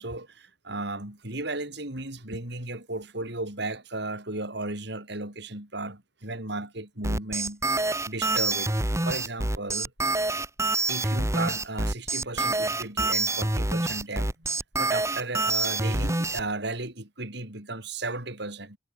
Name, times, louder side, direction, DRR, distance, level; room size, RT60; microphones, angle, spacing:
voice 1, 0.0-8.7 9.0-9.9 10.9-18.8, right 2 dB, 65° right, 6.4 m, -35 dB
sound 1, 7.0-16.4, right 2 dB, 15° right, 1.8 m, -26 dB
head